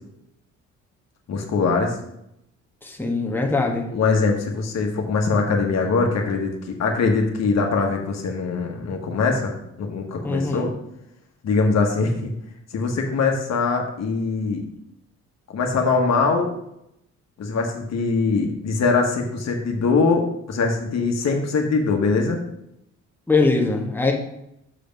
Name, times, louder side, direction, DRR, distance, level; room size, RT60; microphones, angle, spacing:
voice 1, 1.3-2.0 3.9-10.7 11.4-12.3 12.7-14.6 15.5-16.5 17.4-22.4, left 4 dB, 60° left, 2 dB, 1.5 m, -22 dB
voice 2, 2.8-3.9 10.2-10.7 23.3-24.1, left 3 dB, 5° left, -1 dB, 1.4 m, -22 dB
6.6 x 5.1 x 5.3 m, 0.79 s
cardioid pair, 90°, 30 cm